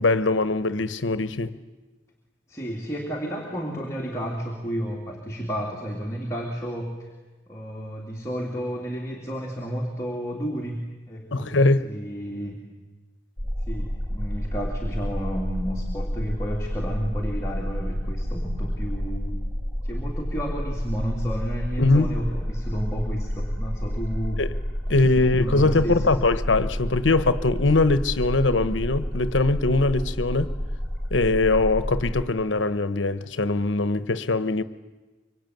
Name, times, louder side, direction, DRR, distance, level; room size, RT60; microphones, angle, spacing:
voice 1, 0.0-1.6 11.3-11.9 21.8-22.1 24.4-24.5 24.9-30.5 31.1-34.6, left 3 dB, 90° left, 1.2 m, -22 dB
voice 2, 2.5-7.1 7.5-11.5 11.8-12.6 13.7-19.4 19.8-24.4 24.9-26.1, equal, 15° left, 2.9 m, -32 dB
sound 1, 13.4-32.3, equal, ahead, 5.1 m, -30 dB
24.5 x 24.5 x 9.3 m
head